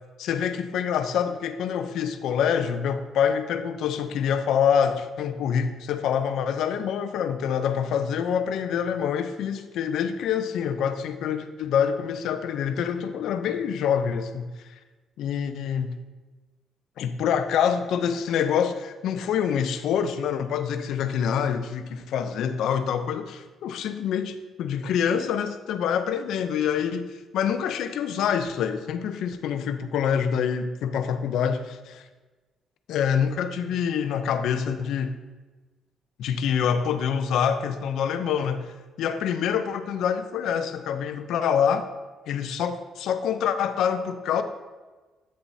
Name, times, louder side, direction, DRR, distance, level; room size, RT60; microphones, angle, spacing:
voice 1, 0.2-14.5 15.2-16.0 17.0-27.1 27.3-32.0 32.9-35.2 36.2-41.8 42.3-44.4, left 8 dB, 75° left, 9 dB, 0.5 m, -26 dB
8.7 x 6.9 x 2.7 m, 1.3 s
cardioid pair, 125°, 0 cm